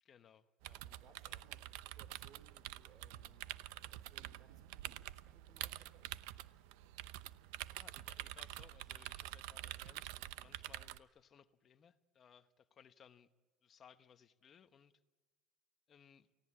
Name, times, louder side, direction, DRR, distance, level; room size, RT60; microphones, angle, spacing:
voice 1, 0.0-0.8 1.2-1.4 7.7-13.3 13.6-14.9 15.9-16.3, left 7 dB, 25° left, 1.0 m, -64 dB
sound 1, 0.6-11.0, right 15 dB, 85° right, 0.8 m, -48 dB
voice 2, 0.7-6.3 14.0-14.1, right 6 dB, 40° right, 2.9 m, -67 dB
29.5 x 17.5 x 8.8 m
cardioid pair, 170°, 0 cm